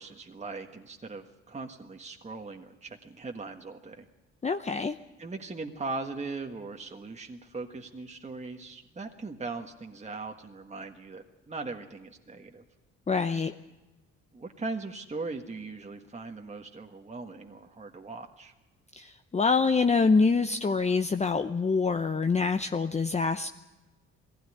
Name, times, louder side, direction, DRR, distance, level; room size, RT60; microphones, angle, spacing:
voice 1, 0.0-4.1 5.2-12.6 14.3-18.5, right 3 dB, 20° right, 3 dB, 1.5 m, -39 dB
voice 2, 4.4-5.0 13.1-13.5 19.0-23.5, left 4 dB, 20° left, 8 dB, 0.7 m, -25 dB
20.0 x 16.0 x 9.9 m, 1.1 s
cardioid pair, 90°, 30 cm